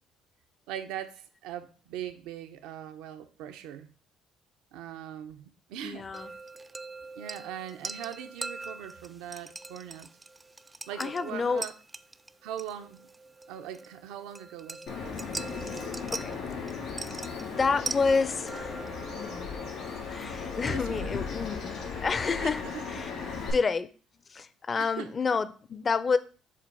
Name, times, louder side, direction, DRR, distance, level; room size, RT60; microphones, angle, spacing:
voice 1, 0.7-3.9 4.7-6.3 7.2-10.1 10.9-11.7 12.4-13.1 13.5-15.2 20.7-21.2 22.4-23.1 23.4-23.5 24.8-25.1, right 10 dB, 85° right, 0.6 m, -41 dB
voice 2, 5.8-6.3 10.9-11.6 16.1-16.4 17.4-18.9 19.1-19.7 20.1-23.1 23.5-23.9 24.3-26.2, left 4 dB, 35° left, 0.5 m, -29 dB
sound 1, 6.1-21.0, right 3 dB, 20° right, 0.4 m, -42 dB
Bird vocalization bird call bird song, 14.9-23.5, left 5 dB, 70° left, 2.9 m, -37 dB
7.3 x 2.5 x 5.4 m
supercardioid pair, 85°, 0 cm